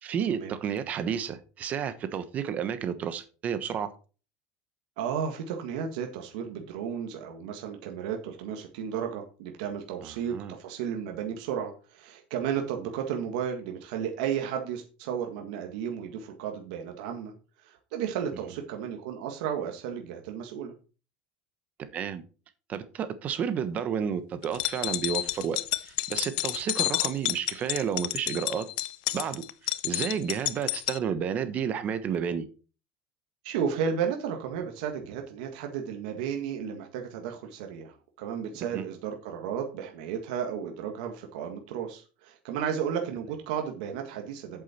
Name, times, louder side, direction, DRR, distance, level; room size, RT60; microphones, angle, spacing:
voice 1, 0.0-3.9 10.0-10.5 21.8-22.2 22.7-28.7 29.1-32.5 38.7-38.9, right 8 dB, 35° right, 12 dB, 1.1 m, -31 dB
voice 2, 5.0-17.3 17.6-20.7 33.4-44.6, right 8 dB, 85° right, 3 dB, 1.7 m, -33 dB
sound 1, 24.4-31.0, left 18 dB, 90° left, 0.6 m, -30 dB
8.5 x 7.5 x 4.4 m, 0.35 s
cardioid pair, 145°, 4 cm